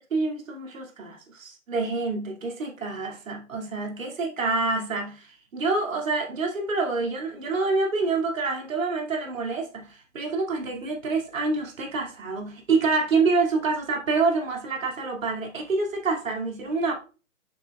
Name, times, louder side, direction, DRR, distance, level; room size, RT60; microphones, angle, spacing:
voice 1, 0.1-16.9, right 3 dB, 75° right, 2.6 m, -27 dB
7.5 x 6.1 x 2.4 m
hypercardioid pair, 175°, 40 cm